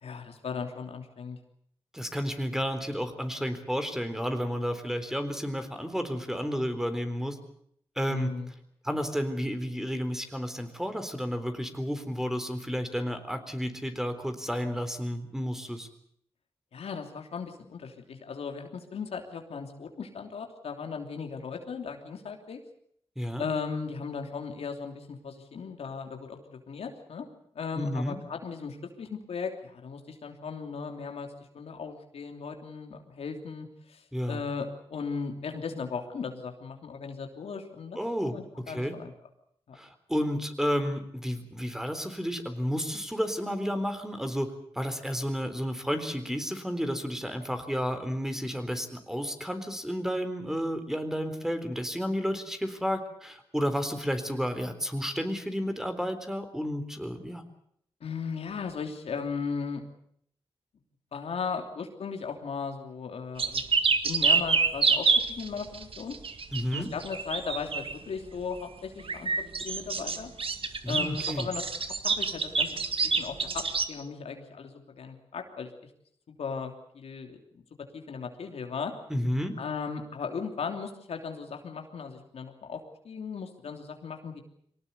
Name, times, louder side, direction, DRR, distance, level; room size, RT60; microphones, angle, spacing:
voice 1, 0.0-1.4 8.1-8.5 16.7-22.6 23.4-27.3 27.5-31.3 31.5-38.0 38.2-39.1 58.0-59.8 61.1-63.6 64.0-66.1 66.7-70.3 70.9-71.6 72.0-72.8 73.0-75.7 76.4-77.6 77.9-78.9 79.6-84.4, left 5 dB, 90° left, 4 dB, 3.1 m, -37 dB
voice 2, 1.9-7.4 8.0-8.3 8.8-15.9 23.2-23.4 27.7-28.2 34.1-34.4 38.0-39.0 39.7-57.4 66.5-66.9 70.8-71.5 79.1-79.6, equal, 5° right, 8 dB, 3.9 m, -31 dB
sound 1, 63.4-68.0 69.0-73.9, right 4 dB, 65° right, 1.8 m, -27 dB
23.5 x 18.5 x 8.3 m, 0.68 s
cardioid pair, 65°, 10 cm